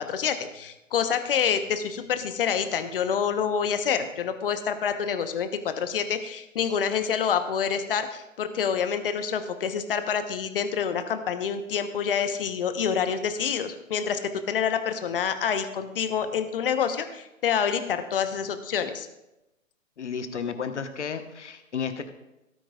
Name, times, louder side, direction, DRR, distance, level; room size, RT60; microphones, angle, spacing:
voice 1, 0.0-14.2 14.5-19.1, left 7 dB, 45° left, 9 dB, 1.0 m, -27 dB
voice 2, 20.0-22.1, left 6 dB, 60° left, 9 dB, 1.2 m, -32 dB
17.5 x 8.9 x 2.4 m, 0.94 s
figure-of-eight pair, 130°, 39 cm